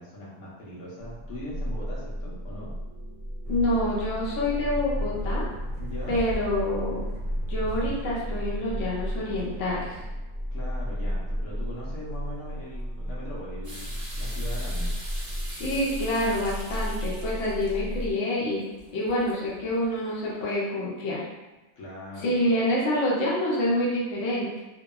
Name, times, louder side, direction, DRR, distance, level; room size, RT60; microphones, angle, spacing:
voice 1, 0.0-2.7 5.8-6.2 10.5-14.9 21.8-22.3, equal, 85° left, -6 dB, 1.2 m, -40 dB
sound 1, 1.0-18.1, equal, 45° left, 0.6 m, -33 dB
sound 2, 3.4-10.1, right 1 dB, 65° right, 0.8 m, -40 dB
voice 2, 3.5-5.4 6.1-7.1 7.5-10.0 15.5-18.6 18.9-21.2 22.2-24.6, left 1 dB, 65° left, -6 dB, 1.0 m, -27 dB
sound 3, 13.6-20.5, right 1 dB, 45° right, 0.4 m, -44 dB
2.9 x 2.2 x 2.3 m, 1.1 s
omnidirectional pair, 1.5 m